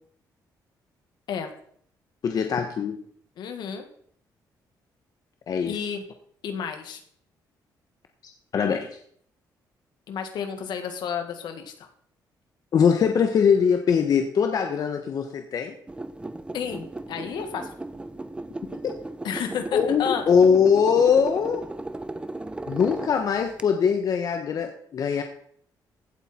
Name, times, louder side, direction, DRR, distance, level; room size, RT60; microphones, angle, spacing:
voice 1, 2.2-3.0 5.5-5.8 8.5-8.9 12.7-15.7 19.7-21.6 22.7-25.2, left 6 dB, 55° left, 5 dB, 1.2 m, -21 dB
voice 2, 3.4-3.9 5.7-6.0 6.4-7.0 10.1-11.7 16.5-17.7 19.2-20.2, left 7 dB, 75° left, 6 dB, 1.9 m, -31 dB
sound 1, 15.9-23.6, right 2 dB, 15° right, 0.7 m, -36 dB
16.0 x 8.2 x 4.4 m, 0.64 s
cardioid pair, 120°, 8 cm